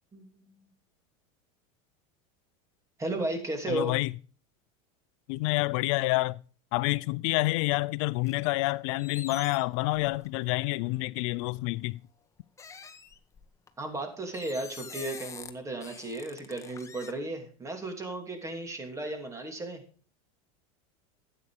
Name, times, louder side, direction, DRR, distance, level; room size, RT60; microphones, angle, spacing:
voice 1, 0.1-0.7 3.0-3.9 13.8-19.8, right 2 dB, 15° right, 3.0 m, -35 dB
voice 2, 3.7-4.1 5.3-6.4 6.7-12.0, left 21 dB, 65° left, 0.6 m, -28 dB
sound 1, 8.3-8.7 9.0-10.5 11.3-11.5 12.6-13.7 14.3-15.5 15.8-17.1, left 5 dB, 15° left, 1.1 m, -46 dB
12.5 x 8.6 x 4.9 m
supercardioid pair, 120°, 17 cm